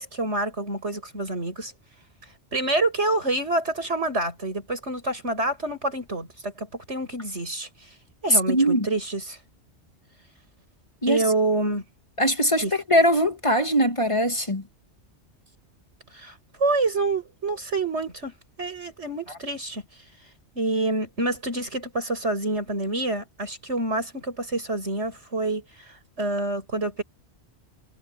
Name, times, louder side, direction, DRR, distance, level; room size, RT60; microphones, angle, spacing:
voice 1, 0.0-1.7 2.5-7.7 8.2-9.4 11.1-11.8 12.6-12.7 16.1-19.8 20.6-27.0, right 2 dB, 90° right, 7.3 m, -27 dB
voice 2, 8.5-8.9 11.0-11.2 12.2-14.6, equal, 25° left, 2.1 m, -21 dB
omnidirectional pair, 1.1 m